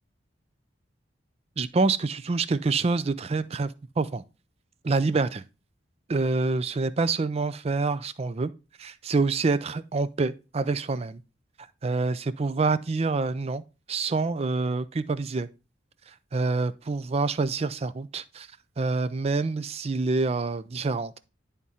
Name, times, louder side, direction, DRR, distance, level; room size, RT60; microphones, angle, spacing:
voice 1, 1.6-4.2 4.8-5.4 6.1-8.5 8.8-11.2 11.8-13.6 13.9-15.5 16.1-18.5 18.8-21.2, right 3 dB, 35° right, 0.4 m, -27 dB
10.5 x 3.6 x 4.1 m
head